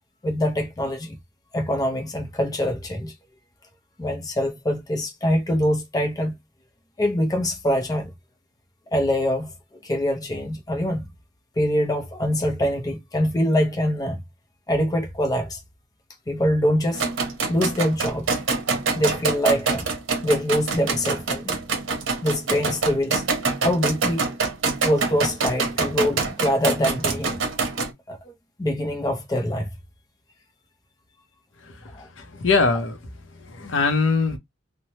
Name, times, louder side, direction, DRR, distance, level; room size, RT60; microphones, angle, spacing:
voice 1, 0.2-1.2 1.5-3.1 4.0-6.4 7.0-8.1 8.9-9.5 9.8-11.1 11.6-14.2 14.7-15.6 16.3-17.0 17.5-18.4 18.9-19.9 20.2-21.6 22.2-23.2 23.6-24.2 24.8-27.4 28.1-28.2 28.6-29.7 31.9-32.1, equal, 20° left, 0.5 m, -24 dB
sound 1, 16.9-27.9, right 4 dB, 75° right, 0.8 m, -26 dB
voice 2, 31.6-33.0 33.3-34.4, left 4 dB, 70° left, 0.7 m, -23 dB
3.1 x 2.1 x 2.8 m
head